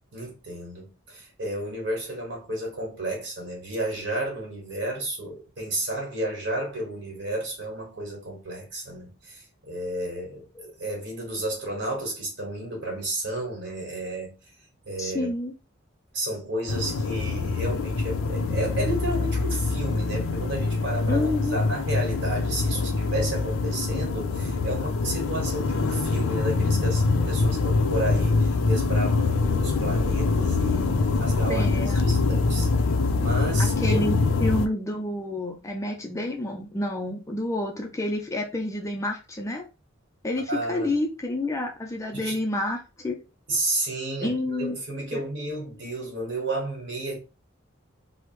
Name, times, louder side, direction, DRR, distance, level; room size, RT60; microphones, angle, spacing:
voice 1, 0.1-14.3 14.9-15.3 16.1-30.9 31.2-31.7 32.0-32.7 33.1-34.2 40.5-41.0 42.1-42.4 43.5-47.2, right 1 dB, 55° right, 1.4 m, -32 dB
voice 2, 15.0-15.5 21.1-21.6 31.5-32.1 33.6-39.6 40.2-43.2 44.2-44.8 45.1-45.2, left 1 dB, 15° left, 0.3 m, -29 dB
sound 1, 16.7-34.7, left 3 dB, 90° left, 0.4 m, -24 dB
3.1 x 2.0 x 3.0 m
head